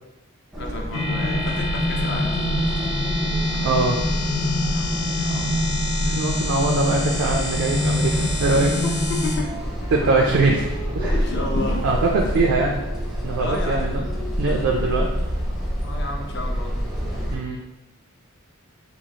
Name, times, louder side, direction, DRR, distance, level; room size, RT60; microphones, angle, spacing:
sound 1, 0.5-17.4, equal, ahead, 0.4 m, -28 dB
voice 1, 0.6-2.5 4.7-5.6 8.1-8.3 8.6-9.6 11.0-11.8 13.4-13.9 15.8-16.7, left 2 dB, 55° left, 1 dB, 0.5 m, -32 dB
sound 2, 0.9-9.3, left 1 dB, 85° left, 0.9 m, -25 dB
voice 2, 3.6-4.0 6.0-8.7 9.9-10.6 10.9-11.1 11.8-12.8 13.2-14.1 14.4-15.1 17.3-17.6, right 3 dB, 75° right, 0 dB, 0.3 m, -22 dB
sound 3, 11.2-13.6 14.0-14.1 14.5-14.9, equal, 40° left, 0.9 m, -34 dB
3.0 x 2.3 x 2.7 m, 0.99 s
head